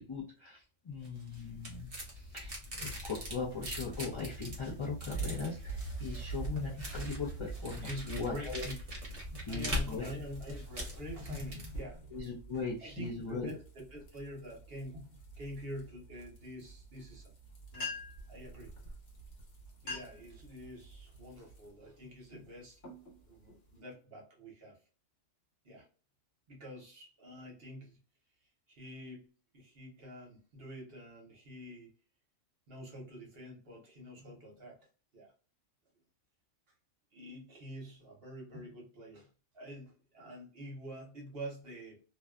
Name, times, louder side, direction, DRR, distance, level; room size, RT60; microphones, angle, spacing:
voice 1, 0.0-8.7 9.5-10.1 12.1-13.5, left 4 dB, 35° left, 0.5 m, -39 dB
sound 1, 1.0-11.8, equal, 35° right, 0.7 m, -42 dB
sound 2, 5.1-21.7, right 4 dB, 75° left, 1.1 m, -47 dB
voice 2, 7.8-8.7 9.2-12.2 12.8-17.3 17.7-17.9 18.3-18.7 19.8-22.8 23.3-24.8 25.6-25.9 26.5-28.0 28.7-29.3 29.5-31.9 32.7-34.8 35.1-35.3 37.1-39.3 39.5-42.0, equal, 55° right, 1.0 m, -46 dB
sound 3, 17.4-17.5 17.7-18.3 19.2-19.3 19.7-20.3 20.8-21.1 21.7-22.0 22.5-23.8, left 3 dB, 55° left, 1.3 m, -43 dB
2.6 x 2.2 x 2.2 m
omnidirectional pair, 1.2 m